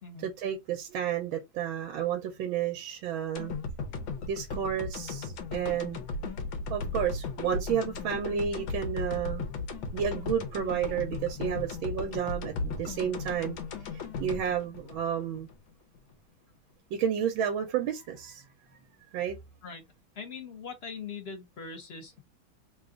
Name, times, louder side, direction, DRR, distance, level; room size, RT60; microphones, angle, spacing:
voice 1, 0.2-3.5 4.3-6.0 6.7-9.5 9.9-13.6 13.9-15.5 16.9-18.4 19.1-19.4, right 8 dB, 85° right, 1.5 m, -31 dB
sound 1, 3.3-15.6 15.9-16.0, left 4 dB, 80° left, 1.6 m, -36 dB
voice 2, 20.2-22.2, left 5 dB, 45° left, 0.8 m, -41 dB
3.7 x 2.3 x 3.6 m
omnidirectional pair, 2.2 m